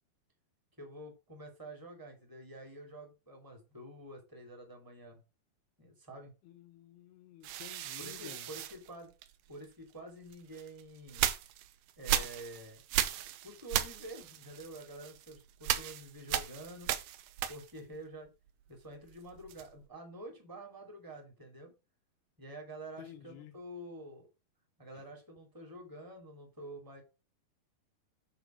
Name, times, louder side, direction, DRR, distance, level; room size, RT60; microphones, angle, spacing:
voice 1, 0.8-5.2 5.8-6.3 8.0-9.1 9.5-11.3 12.0-12.8 13.4-16.9 17.5-18.3 18.7-21.7 22.4-24.3 24.8-27.0, right 1 dB, 5° right, 2.0 m, -48 dB
voice 2, 6.4-8.5 23.0-23.6 24.9-25.0, left 11 dB, 90° left, 3.2 m, -52 dB
sound 1, 7.4-9.7 10.3-18.0 18.3-19.9, right 12 dB, 80° right, 2.3 m, -36 dB
9.9 x 4.0 x 6.3 m
omnidirectional pair, 4.4 m